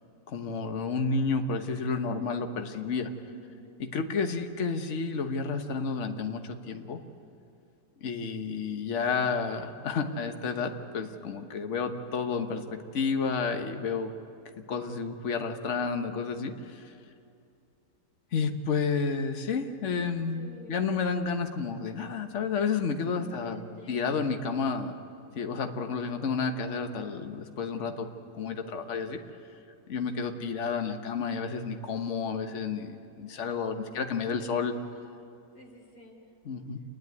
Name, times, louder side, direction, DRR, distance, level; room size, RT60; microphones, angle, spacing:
voice 1, 0.3-3.1 3.8-7.0 8.0-14.1 14.7-16.9 18.3-24.9 25.3-28.1 28.3-29.2 29.9-34.7 36.4-36.8, left 5 dB, 50° left, 6 dB, 1.3 m, -31 dB
voice 2, 3.3-3.6 20.3-20.8 23.1-24.2 27.8-28.1 33.8-34.4 35.5-36.3, equal, 70° left, 0 dB, 4.0 m, -50 dB
28.5 x 10.5 x 9.5 m, 2.5 s
omnidirectional pair, 1.8 m